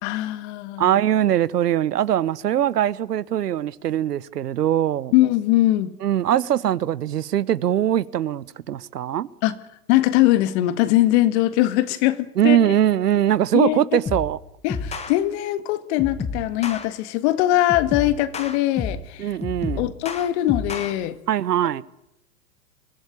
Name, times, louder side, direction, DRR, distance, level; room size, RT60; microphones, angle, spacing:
voice 1, 0.0-1.0 5.1-5.9 9.4-9.5 9.9-12.6 13.5-13.8 14.6-19.3 19.8-21.2, left 15 dB, 45° left, 1.9 m, -21 dB
voice 2, 0.8-5.1 6.0-9.3 12.4-14.4 19.2-19.9 21.3-21.8, right 11 dB, 85° right, 1.0 m, -21 dB
sound 1, 14.1-14.4 14.7-15.1 16.0-16.8 17.7-19.1 19.4-20.9, left 4 dB, 15° left, 2.1 m, -30 dB
23.5 x 16.0 x 9.9 m
hypercardioid pair, 125°, 47 cm